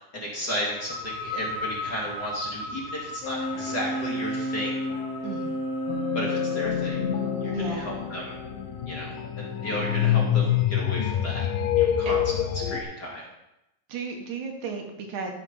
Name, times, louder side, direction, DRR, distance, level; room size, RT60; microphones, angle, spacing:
voice 1, 0.1-4.7 6.1-7.0 7.4-8.4 8.9-11.5 11.8-12.2 12.7-13.2, equal, 30° left, -3 dB, 2.8 m, -34 dB
sound 1, 0.7-8.2, left 2 dB, 10° left, 2.8 m, -38 dB
sound 2, 3.2-10.8, equal, 60° left, 2.9 m, -34 dB
voice 2, 5.2-5.6 7.5-7.9 12.1-12.2 13.9-15.3, right 5 dB, 70° right, 3 dB, 2.7 m, -34 dB
sound 3, 5.9-12.8, left 10 dB, 90° left, 2.8 m, -26 dB
13.5 x 8.1 x 5.6 m, 0.89 s
omnidirectional pair, 3.8 m